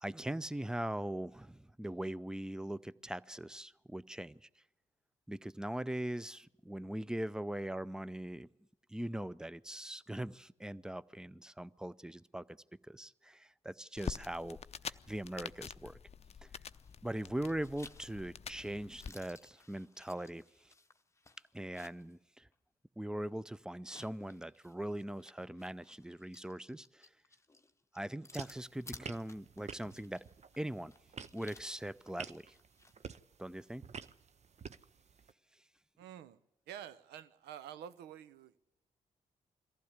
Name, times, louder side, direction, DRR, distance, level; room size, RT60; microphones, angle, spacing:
voice 1, 0.0-4.5 5.3-8.5 8.9-12.6 12.9-16.0 17.0-20.4 21.5-22.5 23.0-27.1 27.9-30.2 30.6-30.9 31.3-32.5 33.4-33.8, right 1 dB, 5° right, 0.6 m, -41 dB
sound 1, 14.0-19.1, left 6 dB, 35° left, 0.6 m, -46 dB
sound 2, 16.7-17.1 17.4-22.2 22.5-22.6 23.7-33.0, left 2 dB, 15° left, 1.0 m, -58 dB
sound 3, 28.3-35.3, right 6 dB, 40° right, 0.7 m, -51 dB
voice 2, 36.0-36.4 36.7-38.6, right 10 dB, 75° right, 0.8 m, -49 dB
22.5 x 15.0 x 8.2 m
hypercardioid pair, 40°, 18 cm